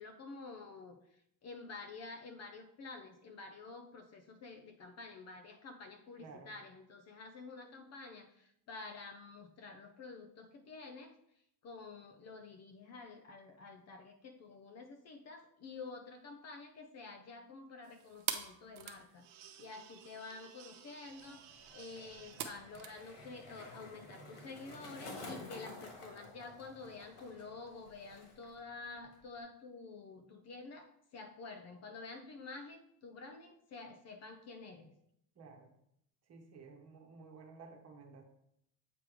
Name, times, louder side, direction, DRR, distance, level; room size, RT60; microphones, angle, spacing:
voice 1, 0.0-11.1 11.6-21.4 21.7-34.9, left 3 dB, 35° left, 6 dB, 0.6 m, -49 dB
voice 2, 6.2-6.5 35.3-35.7 36.3-38.2, right 4 dB, 35° right, 3 dB, 1.2 m, -54 dB
sound 1, 17.8-26.2, right 10 dB, 80° right, 0.9 m, -48 dB
Skateboard, 21.0-28.6 28.9-29.4, left 2 dB, 60° left, 2.1 m, -52 dB
7.7 x 3.3 x 4.9 m, 0.74 s
cardioid pair, 130°, 46 cm